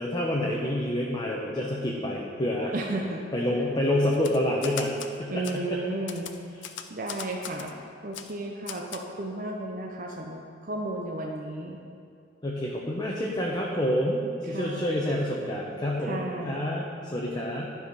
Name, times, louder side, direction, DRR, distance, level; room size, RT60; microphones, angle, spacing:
voice 1, 0.0-2.7 3.3-5.8 12.4-17.7, left 1 dB, 25° left, -3 dB, 0.7 m, -28 dB
voice 2, 2.7-3.2 3.5-3.6 5.3-6.3 6.9-7.7 8.0-11.8 14.5-14.9 16.0-16.7, right 2 dB, 45° right, 1 dB, 0.7 m, -33 dB
Typewriter, 4.1-5.1 5.4-5.6 6.1-7.7 8.1-8.3 8.7-9.0, left 9 dB, 70° left, 0.5 m, -39 dB
11.5 x 4.9 x 5.3 m, 2.4 s
head